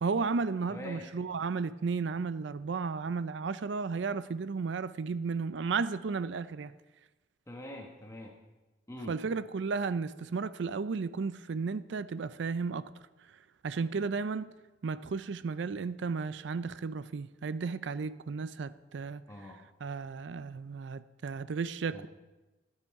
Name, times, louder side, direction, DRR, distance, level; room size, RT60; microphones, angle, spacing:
voice 1, 0.0-6.7 9.1-12.9 13.6-14.5 14.8-19.2 19.8-22.1, right 4 dB, 75° right, 0.4 m, -34 dB
voice 2, 0.7-1.1 7.5-8.4 8.9-9.2 19.3-19.6 21.9-22.1, left 1 dB, 15° left, 1.1 m, -44 dB
14.5 x 9.5 x 4.7 m
head